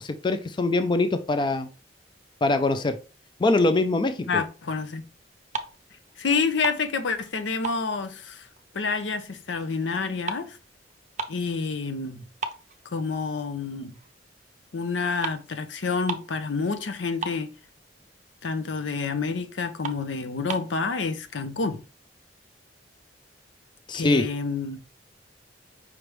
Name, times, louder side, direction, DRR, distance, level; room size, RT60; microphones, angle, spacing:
voice 1, 0.0-1.7 2.4-3.0 3.4-4.4 23.9-24.3, left 2 dB, 25° left, 0.4 m, -23 dB
voice 2, 4.3-5.0 6.2-8.5 8.7-10.6 11.3-12.2 12.9-13.9 14.7-17.5 18.4-21.8 23.9-24.8, left 4 dB, 80° left, 0.6 m, -28 dB
sound 1, 5.3-5.9 6.2-7.3 7.6-9.1 9.5-11.5 11.9-12.0 12.4-13.5 13.9-14.1 14.9-15.0 15.2-15.5 15.7-15.8 16.0-16.4 16.7-16.8 17.0-17.8 18.3-18.4 18.8-18.9 19.3-19.4 19.8-20.8, right 4 dB, 40° right, 0.5 m, -35 dB
5.0 x 3.3 x 3.0 m
head